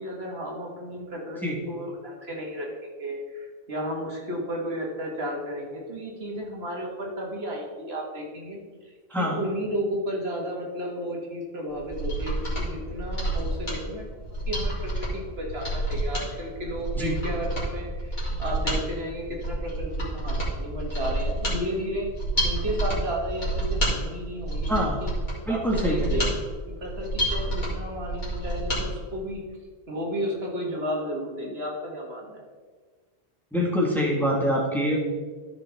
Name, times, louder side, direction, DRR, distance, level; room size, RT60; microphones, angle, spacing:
voice 1, 0.0-8.6 8.8-22.1 22.4-25.1 25.5-26.4 26.7-29.4 29.9-32.4, equal, 70° right, -1 dB, 1.9 m, -33 dB
voice 2, 9.1-9.4 17.0-17.1 24.7-25.0 25.5-26.2 33.5-35.0, equal, ahead, -3 dB, 1.6 m, -25 dB
Mechanisms, 11.7-28.8 29.2-29.3, right 1 dB, 45° left, 3.2 m, -29 dB
14.0 x 6.0 x 3.5 m, 1.5 s
omnidirectional pair, 1.1 m